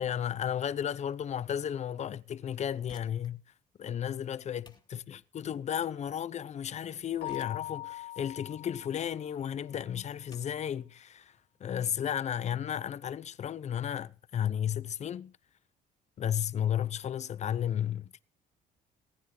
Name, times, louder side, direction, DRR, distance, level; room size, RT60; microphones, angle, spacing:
voice 1, 0.0-3.4 3.8-15.4 16.2-18.2, left 9 dB, 40° left, 0.7 m, -33 dB
sound 1, 2.7-13.3, left 5 dB, 25° left, 2.3 m, -63 dB
Keyboard (musical), 7.2-9.7, left 16 dB, 75° left, 2.0 m, -42 dB
19.0 x 9.7 x 4.9 m
cardioid pair, 110°, 17 cm